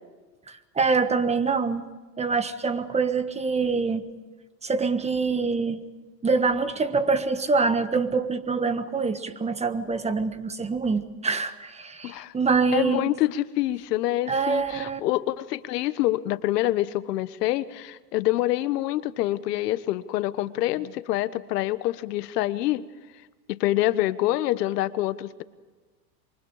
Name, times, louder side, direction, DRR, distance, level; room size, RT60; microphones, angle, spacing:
voice 1, 0.5-1.8 2.2-4.0 4.6-5.8 6.2-13.1 14.3-15.0, right 4 dB, 15° right, 11 dB, 1.4 m, -25 dB
voice 2, 12.0-12.3 12.7-22.8 23.5-25.4, left 15 dB, 75° left, 14 dB, 1.3 m, -26 dB
27.5 x 24.0 x 4.9 m, 1.3 s
supercardioid pair, 125°, 48 cm